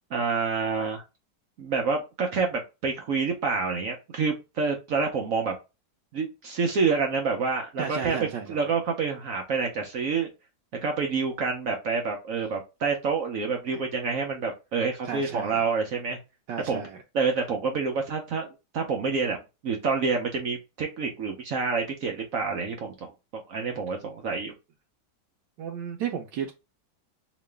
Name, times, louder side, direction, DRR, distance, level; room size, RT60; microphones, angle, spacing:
voice 1, 0.1-1.0 1.6-5.6 6.1-8.2 8.5-10.3 10.8-16.2 16.7-16.9 17.1-18.5 18.7-24.5, right 4 dB, 60° right, 1.0 m, -28 dB
voice 2, 7.8-8.6 13.7-13.8 15.0-15.7 16.5-17.0 25.6-26.5, right 8 dB, 90° right, 1.3 m, -33 dB
3.0 x 2.9 x 3.3 m
omnidirectional pair, 1.9 m